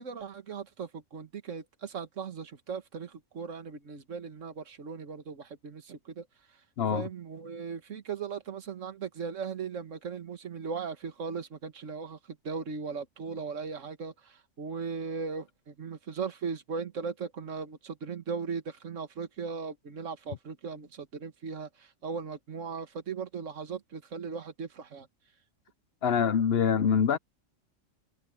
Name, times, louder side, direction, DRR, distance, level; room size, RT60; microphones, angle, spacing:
voice 1, 0.0-6.3 6.9-25.1, right 5 dB, 75° right, 1.9 m, -38 dB
voice 2, 6.8-7.1 26.0-27.2, left 7 dB, 60° left, 0.9 m, -25 dB
omnidirectional pair, 1.3 m